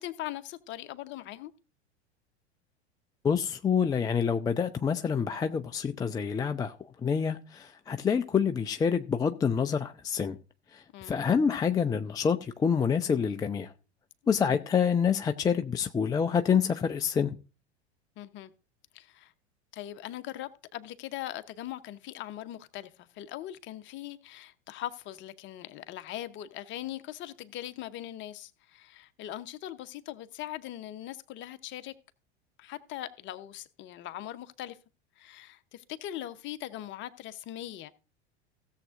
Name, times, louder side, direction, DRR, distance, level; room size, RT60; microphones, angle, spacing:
voice 1, 0.0-1.5 10.9-11.2 18.2-18.5 18.9-19.3 19.7-31.9 32.6-34.8 35.2-37.9, left 13 dB, 35° left, 0.9 m, -40 dB
voice 2, 3.2-10.4 10.7-13.7 14.3-17.3, left 6 dB, 10° left, 0.4 m, -27 dB
16.5 x 7.4 x 2.5 m
figure-of-eight pair, 80°, 33 cm